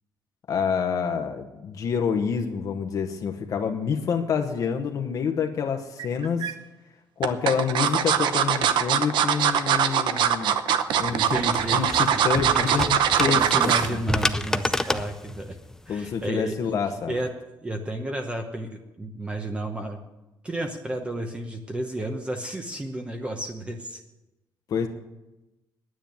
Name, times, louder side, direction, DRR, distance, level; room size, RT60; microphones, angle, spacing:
voice 1, 0.5-6.5 7.2-10.5 11.0-11.4 11.7-14.0 15.9-17.2 24.7-24.9, left 6 dB, 45° left, 4 dB, 1.0 m, -27 dB
sound 1, 6.0-6.5 7.2-13.9 14.3-14.6 14.9-15.0, right 9 dB, 75° right, 0.8 m, -22 dB
sound 2, 10.9-16.3, left 2 dB, 5° left, 0.4 m, -30 dB
voice 2, 11.1-11.8 12.1-12.3 12.6-12.8 13.2-15.6 15.9-16.5 17.1-17.3 17.6-20.0 20.4-24.0, right 1 dB, 15° right, 4 dB, 0.9 m, -32 dB
10.0 x 9.4 x 9.0 m, 1.0 s
cardioid pair, 165°, 8 cm